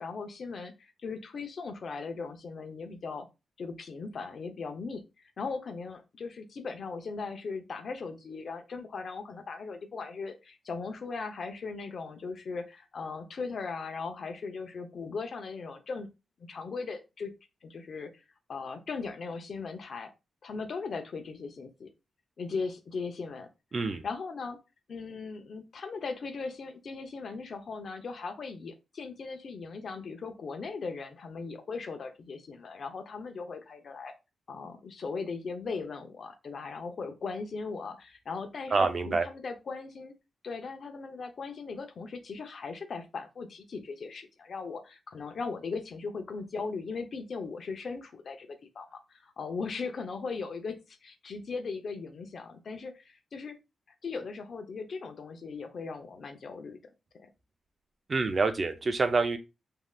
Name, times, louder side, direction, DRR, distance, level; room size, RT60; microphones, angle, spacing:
voice 1, 0.0-3.3 3.6-5.0 5.4-16.1 16.5-17.3 17.6-18.2 18.5-20.1 20.4-21.9 22.4-23.5 23.8-24.6 24.9-34.1 34.5-40.1 40.4-53.6 54.0-56.8, left 4 dB, 65° left, 0.6 m, -38 dB
voice 2, 23.7-24.0 38.7-39.3 58.1-59.4, right 3 dB, 45° right, 0.5 m, -27 dB
3.2 x 2.7 x 2.3 m
cardioid pair, 65°, 0 cm